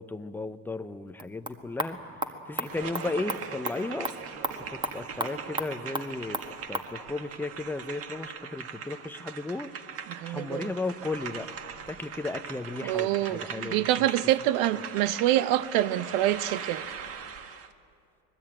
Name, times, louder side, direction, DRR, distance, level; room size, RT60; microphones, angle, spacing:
voice 1, 0.0-2.0 2.5-4.1 4.6-9.7 10.2-11.5 11.9-14.2, left 2 dB, 5° left, 0.8 m, -35 dB
sound 1, 1.1-6.9, right 1 dB, 15° right, 1.7 m, -36 dB
sound 2, 2.6-17.7, right 6 dB, 40° right, 1.7 m, -40 dB
voice 2, 10.1-10.7 12.8-16.8, right 14 dB, 65° right, 0.9 m, -26 dB
25.5 x 20.5 x 9.0 m
supercardioid pair, 115°, 37 cm